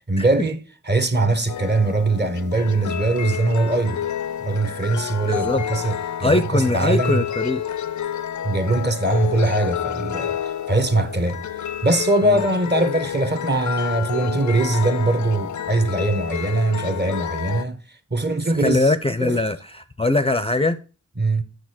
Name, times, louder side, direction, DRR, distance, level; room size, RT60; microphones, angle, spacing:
voice 1, 0.1-4.0 4.4-7.2 8.4-17.8 18.1-18.9 19.2-19.4 21.2-21.4, right 2 dB, 35° right, 1.1 m, -22 dB
sound 1, 1.5-17.6, left 9 dB, 70° left, 0.5 m, -29 dB
voice 2, 5.3-5.6 6.2-7.6 12.2-12.4 18.6-20.8, left 2 dB, 20° left, 0.5 m, -21 dB
6.5 x 6.4 x 6.3 m
wide cardioid pair, 65°, 31 cm